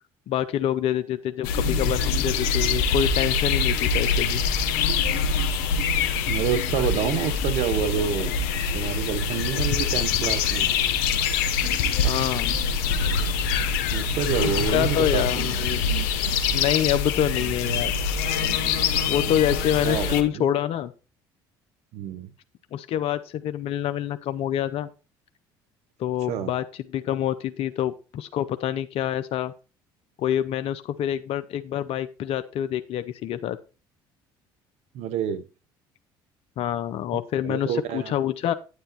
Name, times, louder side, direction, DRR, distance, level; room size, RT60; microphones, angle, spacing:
voice 1, 0.3-4.4 12.0-12.6 14.4-15.8 16.5-17.9 19.1-20.9 22.7-24.9 26.0-26.6 26.9-29.5 30.2-33.6 36.6-38.5, left 11 dB, 60° left, 0.6 m, -26 dB
sound 1, 1.4-20.2, left 5 dB, 80° left, 0.9 m, -24 dB
voice 2, 6.3-8.3 8.7-10.7 13.9-15.5 19.8-20.5 21.9-22.3 26.3-26.5 34.9-35.4 37.4-38.1, right 8 dB, 65° right, 0.8 m, -28 dB
9.4 x 8.9 x 2.9 m
hypercardioid pair, 70°, 12 cm